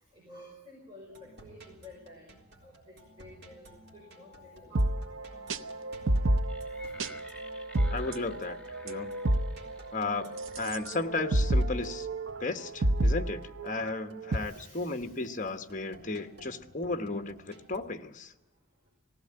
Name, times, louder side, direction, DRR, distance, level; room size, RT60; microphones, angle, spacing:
voice 1, 0.1-4.8 14.4-15.2, left 1 dB, 20° right, -2 dB, 5.3 m, -52 dB
sound 1, 1.1-17.8, equal, 55° right, 3.8 m, -55 dB
sound 2, 4.8-14.4, right 1 dB, 75° right, 0.8 m, -30 dB
sound 3, 6.4-11.7, left 2 dB, 5° left, 1.6 m, -53 dB
voice 2, 7.9-8.6 8.8-9.1 9.9-12.1 12.4-18.3, left 3 dB, 40° left, 8 dB, 1.3 m, -34 dB
19.0 x 16.0 x 8.8 m, 0.94 s
head